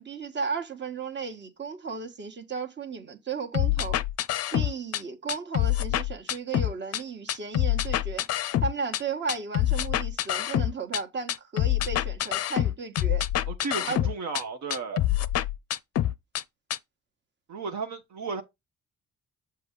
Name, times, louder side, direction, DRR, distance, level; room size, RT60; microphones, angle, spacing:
voice 1, 0.0-4.0 4.5-8.2 8.6-13.2 13.9-14.0, right 5 dB, 35° right, 1.2 m, -34 dB
sound 1, 3.5-5.0 5.3-7.0 7.3-9.0 9.3-11.0 11.3-14.4 14.7-16.4 16.7-16.8, left 13 dB, 55° left, 0.4 m, -26 dB
voice 2, 13.5-15.1 17.5-18.4, right 4 dB, 70° right, 0.9 m, -34 dB
6.9 x 2.8 x 5.1 m
cardioid pair, 90°, 30 cm